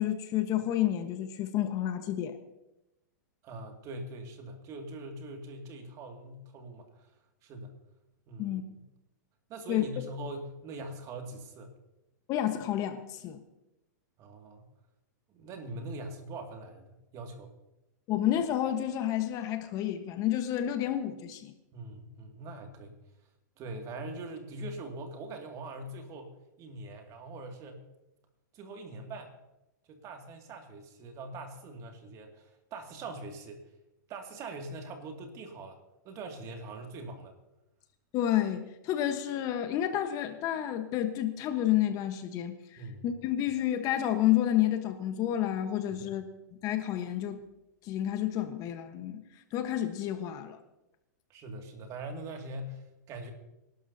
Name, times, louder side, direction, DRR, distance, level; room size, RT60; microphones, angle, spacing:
voice 1, 0.0-2.4 8.4-8.6 9.7-9.8 12.3-13.4 18.1-21.5 38.1-42.5 43.0-46.2 46.6-47.4 47.8-49.2 49.5-50.6, left 12 dB, 35° left, 8 dB, 1.3 m, -30 dB
voice 2, 3.4-7.1 7.4-7.7 8.3-8.8 9.5-11.7 14.2-14.7 15.3-17.5 21.7-23.0 23.6-27.9 28.5-29.3 29.9-33.6 34.1-37.3 42.8-43.1 45.9-46.1 51.3-53.3, right 2 dB, 35° right, 3 dB, 2.3 m, -42 dB
25.5 x 12.0 x 2.8 m, 0.91 s
hypercardioid pair, 135°, 10 cm